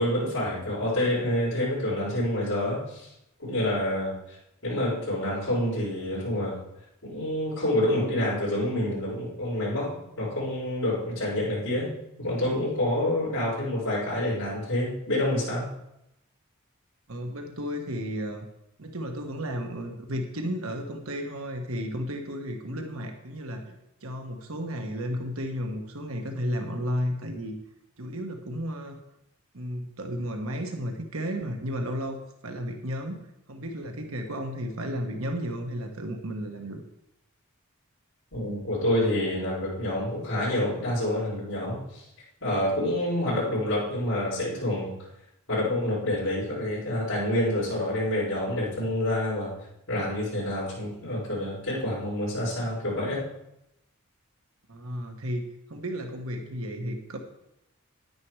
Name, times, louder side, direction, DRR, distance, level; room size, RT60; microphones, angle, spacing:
voice 1, 0.0-3.1 3.4-4.1 4.6-6.6 7.0-11.9 12.2-15.7 38.3-42.0 42.4-44.9 45.5-49.5 49.9-53.2, left 1 dB, 65° left, -11 dB, 5.3 m, -27 dB
voice 2, 17.1-18.4 18.8-23.8 24.0-27.6 28.0-29.0 29.5-33.2 33.5-36.8 54.7-57.2, equal, 75° right, 4 dB, 1.4 m, -33 dB
10.0 x 9.6 x 4.8 m, 0.83 s
head